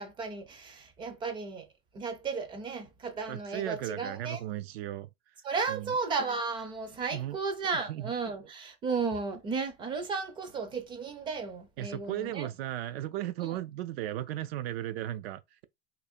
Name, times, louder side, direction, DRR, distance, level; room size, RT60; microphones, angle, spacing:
voice 1, 0.0-1.7 1.9-4.4 5.4-12.5 13.4-13.5, right 4 dB, 15° right, 0.4 m, -34 dB
voice 2, 3.3-5.1 5.7-5.9 7.1-7.4 7.8-8.1 11.8-15.6, right 13 dB, 80° right, 0.5 m, -36 dB
2.7 x 2.5 x 4.2 m
supercardioid pair, 160°, 30 cm